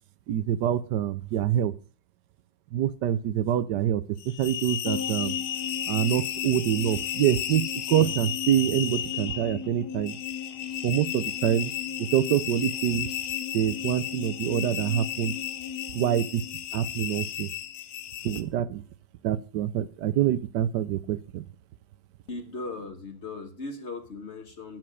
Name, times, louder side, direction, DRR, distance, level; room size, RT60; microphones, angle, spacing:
voice 1, 0.3-1.7 2.7-5.3 5.9-10.2 10.8-11.7 12.0-13.1 13.5-15.3 15.9-16.4 16.7-17.5 18.2-18.8 19.2-21.4, right 11 dB, 70° right, 16 dB, 1.1 m, -26 dB
sound 1, 4.2-18.4, left 11 dB, 85° left, 1.8 m, -34 dB
sound 2, 4.9-17.4 17.6-17.7, left 7 dB, 60° left, 1.1 m, -39 dB
voice 2, 22.3-24.8, left 3 dB, 40° left, 7 dB, 1.1 m, -38 dB
10.5 x 7.7 x 6.2 m, 0.37 s
omnidirectional pair, 2.2 m